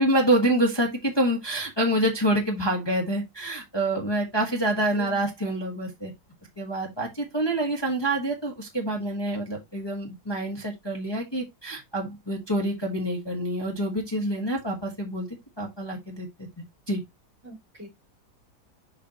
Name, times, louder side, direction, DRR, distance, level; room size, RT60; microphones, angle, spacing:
voice 1, 0.0-6.1 6.6-15.3 15.6-16.5 16.9-17.0, right 1 dB, 15° left, 1.2 m, -27 dB
voice 2, 4.8-5.3 17.4-17.9, right 3 dB, 10° right, 4.1 m, -41 dB
6.5 x 5.5 x 2.9 m
omnidirectional pair, 1.8 m